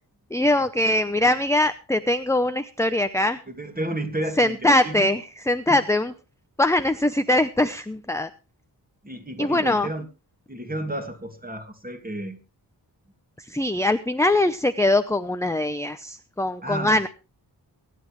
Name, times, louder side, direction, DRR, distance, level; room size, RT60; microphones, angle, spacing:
voice 1, 0.3-3.4 4.4-6.1 6.6-8.3 9.4-9.9 13.4-17.1, left 1 dB, 5° left, 10 dB, 0.7 m, -22 dB
voice 2, 3.5-5.1 5.7-5.8 9.0-10.1 10.5-12.4 16.6-17.0, right 1 dB, 20° right, 5 dB, 2.5 m, -32 dB
23.5 x 9.6 x 3.2 m, 0.32 s
wide cardioid pair, 70°, 43 cm